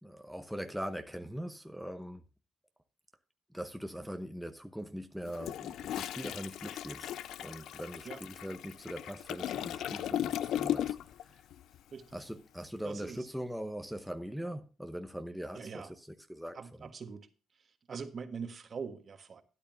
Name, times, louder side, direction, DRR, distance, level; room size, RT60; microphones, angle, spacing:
voice 1, 0.0-2.2 3.5-7.1 7.4-11.0 11.3-11.4 12.1-16.9, equal, ahead, 0.9 m, -41 dB
Toilet flush, 5.2-11.2 11.5-11.8, left 11 dB, 80° left, 0.4 m, -37 dB
voice 2, 12.8-13.3 15.5-15.9 16.5-17.3 17.9-19.4, right 5 dB, 45° right, 1.5 m, -42 dB
12.5 x 9.8 x 2.7 m
cardioid pair, 90°, 0 cm